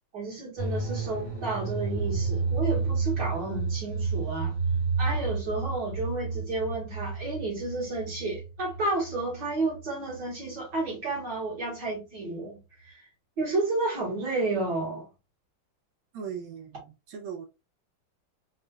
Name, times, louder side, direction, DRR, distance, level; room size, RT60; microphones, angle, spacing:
voice 1, 0.1-4.6 5.0-13.1 13.4-15.1, right 2 dB, 55° right, 2.0 m, -31 dB
sound 1, 0.6-10.5 10.7-10.8, right 4 dB, 20° right, 0.7 m, -31 dB
voice 2, 16.1-17.5, right 7 dB, 80° right, 1.7 m, -39 dB
4.2 x 2.4 x 2.3 m
omnidirectional pair, 2.3 m